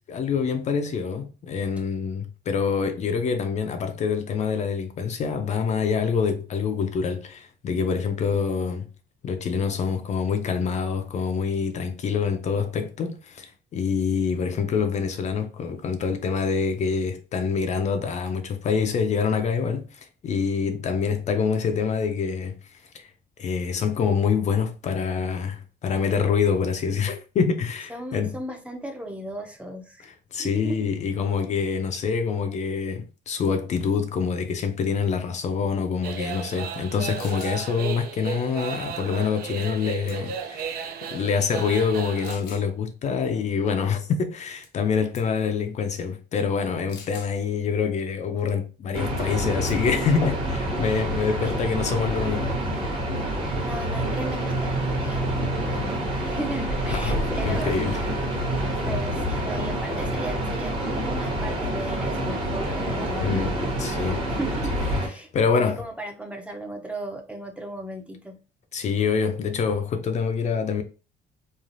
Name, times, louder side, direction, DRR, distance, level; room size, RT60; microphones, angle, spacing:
voice 1, 0.1-8.9 9.2-23.1 23.4-28.4 30.0-40.8 41.1-52.5 56.9-58.0 58.4-58.7 63.2-63.5 63.8-64.2 65.3-65.8 68.7-70.8, left 6 dB, 45° left, 0.4 m, -26 dB
voice 2, 27.9-30.1 30.4-30.9 51.4-51.6 53.6-58.1 58.7-63.5 64.3-68.4, right 1 dB, 5° right, 0.5 m, -36 dB
sound 1, 36.0-42.4, right 7 dB, 60° right, 0.5 m, -34 dB
sound 2, 37.2-37.6 39.6-39.8 40.1-40.5 41.2-41.3 42.2-42.7 44.6-44.9 45.2-45.4 46.9-47.3 49.2-49.4 49.7-50.0, left 5 dB, 85° left, 0.8 m, -45 dB
sound 3, 48.9-65.1, right 1 dB, 30° right, 1.0 m, -27 dB
3.1 x 2.3 x 2.5 m
cardioid pair, 110°, 17 cm